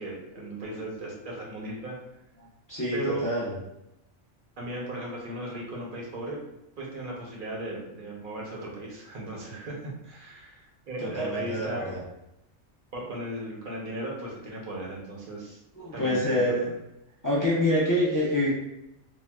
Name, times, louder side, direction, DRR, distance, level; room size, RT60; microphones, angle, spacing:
voice 1, 0.0-2.0 2.9-3.5 4.6-6.4 6.8-11.8 12.9-15.6 15.9-16.4, right 1 dB, 50° right, -3 dB, 0.7 m, -36 dB
voice 2, 2.7-3.5 11.0-12.0 15.8-16.7 17.2-18.5, left 1 dB, 25° left, -8 dB, 0.4 m, -26 dB
3.9 x 2.0 x 2.3 m, 0.84 s
omnidirectional pair, 1.4 m